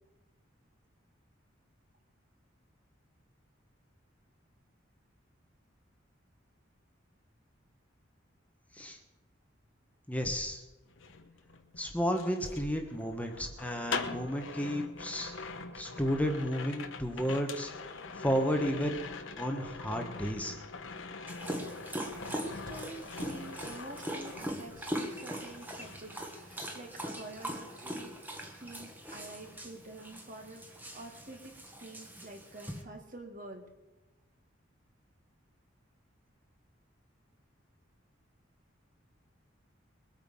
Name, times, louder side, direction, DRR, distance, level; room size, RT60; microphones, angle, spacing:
voice 1, 10.1-10.6 11.8-17.7 18.1-19.0 19.4-20.6, equal, 10° left, 3 dB, 1.3 m, -32 dB
sound 1, 10.9-25.0 25.3-26.8 27.1-27.4, left 4 dB, 75° left, 1.2 m, -43 dB
Dog, 21.3-32.8, equal, 10° right, 1.6 m, -41 dB
voice 2, 22.2-28.2 28.4-33.6, right 2 dB, 45° right, 3 dB, 2.3 m, -48 dB
22.0 x 8.8 x 5.6 m, 1.1 s
head